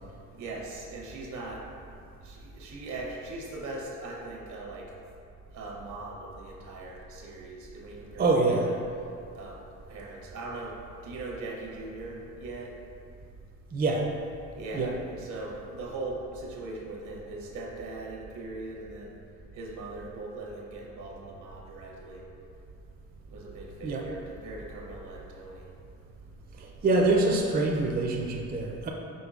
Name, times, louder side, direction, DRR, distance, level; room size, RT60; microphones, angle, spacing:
voice 1, 0.4-1.7 2.2-4.9 5.5-8.8 9.4-9.6 9.9-12.7 14.5-19.2 19.5-22.2 23.3-25.7, right 2 dB, 75° right, -1 dB, 0.9 m, -40 dB
voice 2, 8.2-8.7 13.7-14.1 14.7-14.9 23.8-24.0 26.6-28.9, right 2 dB, 30° right, 0 dB, 0.5 m, -25 dB
5.2 x 3.8 x 2.4 m, 2.5 s
cardioid pair, 90°, 30 cm